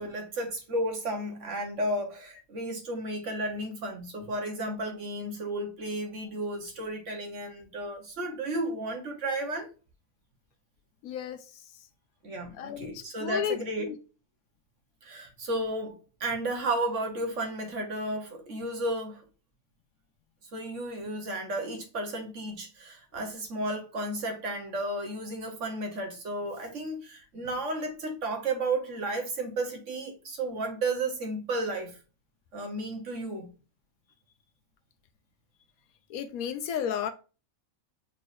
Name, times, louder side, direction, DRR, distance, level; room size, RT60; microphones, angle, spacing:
voice 1, 0.0-9.7 12.2-13.8 15.0-19.2 20.5-32.0 32.5-33.5, right 1 dB, 60° right, 1.5 m, -33 dB
voice 2, 11.0-11.4 12.6-14.0 36.1-37.1, left 9 dB, 85° left, 1.1 m, -33 dB
5.1 x 3.2 x 2.6 m
omnidirectional pair, 1.5 m